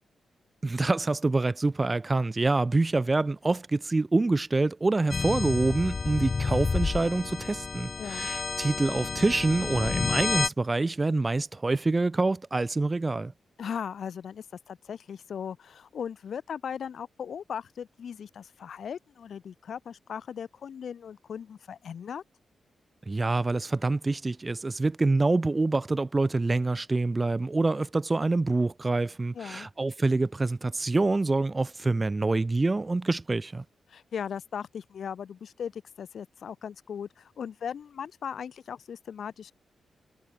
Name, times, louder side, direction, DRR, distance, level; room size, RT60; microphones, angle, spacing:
voice 1, 0.6-13.3 23.1-33.6, right 3 dB, 25° right, 2.2 m, -26 dB
sound 1, 5.1-10.5, left 4 dB, 40° left, 1.6 m, -30 dB
voice 2, 8.0-8.3 13.6-22.2 29.3-29.7 33.9-39.5, left 7 dB, 70° left, 6.7 m, -38 dB
cardioid pair, 90°, 0 cm